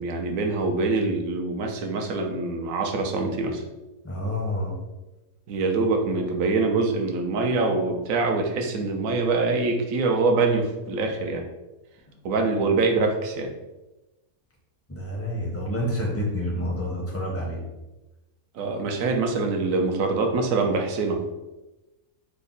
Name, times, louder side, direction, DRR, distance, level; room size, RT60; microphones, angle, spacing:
voice 1, 0.0-3.6 5.5-11.4 12.2-13.5 18.5-21.2, right 3 dB, 70° right, 4 dB, 0.9 m, -24 dB
voice 2, 4.0-4.8 14.9-17.6, left 1 dB, 15° left, -4 dB, 0.5 m, -28 dB
3.4 x 2.1 x 3.9 m, 1.0 s
omnidirectional pair, 1.6 m